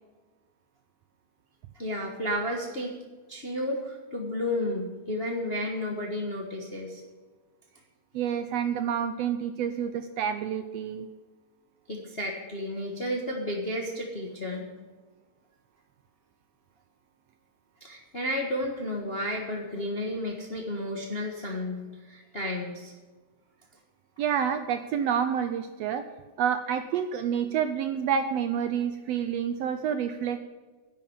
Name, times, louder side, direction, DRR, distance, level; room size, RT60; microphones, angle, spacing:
voice 1, 1.7-2.9 3.3-7.0 11.9-14.7 17.8-22.9, left 1 dB, 40° left, 0 dB, 0.8 m, -32 dB
voice 2, 8.1-11.1 24.2-26.0 26.4-30.4, right 8 dB, 80° right, 9 dB, 1.5 m, -28 dB
11.0 x 7.4 x 8.9 m, 1.3 s
omnidirectional pair, 3.4 m